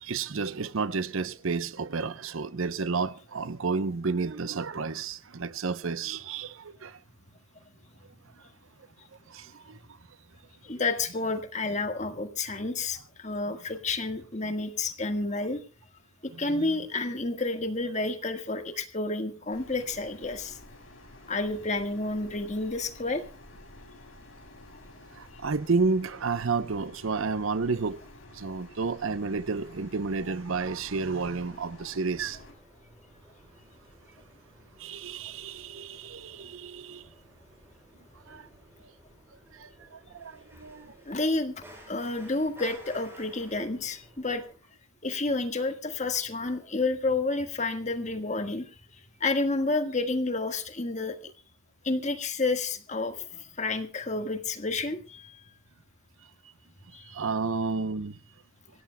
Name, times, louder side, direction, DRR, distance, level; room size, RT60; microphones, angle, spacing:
voice 1, 0.0-7.0 9.3-9.8 16.3-16.7 25.2-28.0 28.3-32.4 34.8-37.1 38.3-38.5 39.5-40.9 57.0-58.2, right 4 dB, 70° right, 0.7 m, -31 dB
voice 2, 10.6-15.6 16.2-20.6 21.3-23.2 41.0-44.4 45.0-48.6 49.2-51.3 51.8-55.4 56.9-57.1, left 3 dB, 35° left, 1.5 m, -30 dB
sound 1, 19.5-32.5, left 1 dB, 65° left, 5.5 m, -50 dB
sound 2, 30.9-44.6, right 1 dB, 10° right, 6.0 m, -55 dB
26.0 x 17.0 x 2.2 m
head